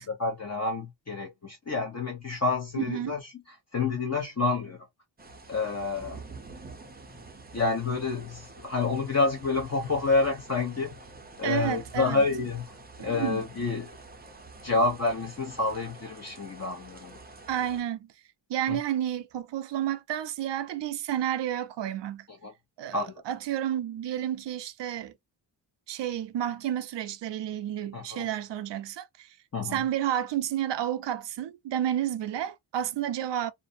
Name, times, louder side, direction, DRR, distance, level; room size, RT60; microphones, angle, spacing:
voice 1, 0.2-3.2 3.7-4.8 5.5-6.2 7.5-11.0 11.4-13.9 14.6-17.2 18.7-18.8 22.4-22.5 22.9-23.2 27.9-28.3 29.5-29.8, left 3 dB, 35° left, 0.8 m, -28 dB
voice 2, 2.7-3.1 11.4-12.2 13.0-13.4 17.5-18.1 18.5-22.3 22.8-25.1 25.9-29.4 29.7-33.5, right 11 dB, 65° right, 0.5 m, -31 dB
sound 1, 5.2-17.8, right 3 dB, 20° right, 0.6 m, -48 dB
2.5 x 2.1 x 2.5 m
wide cardioid pair, 115°, 46 cm